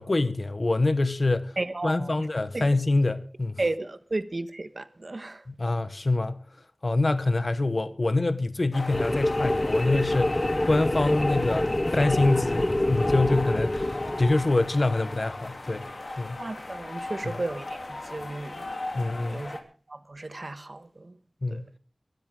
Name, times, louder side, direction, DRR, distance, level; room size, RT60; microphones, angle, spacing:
voice 1, 0.0-1.6 1.8-3.6 5.5-6.4 6.8-11.7 11.9-15.9 16.2-16.4 18.9-19.5 21.4-21.7, left 2 dB, 55° left, 1.0 m, -25 dB
voice 2, 1.6-2.3 2.5-2.7 3.6-5.5 16.4-18.7 18.9-19.1 19.3-19.6 19.9-21.2 21.5-21.6, right 2 dB, 55° right, 1.3 m, -34 dB
sound 1, 8.7-19.6, left 2 dB, 80° left, 3.1 m, -36 dB
sound 2, 8.9-14.6, left 1 dB, 30° left, 0.7 m, -27 dB
24.0 x 13.0 x 3.8 m
wide cardioid pair, 60°, 0 cm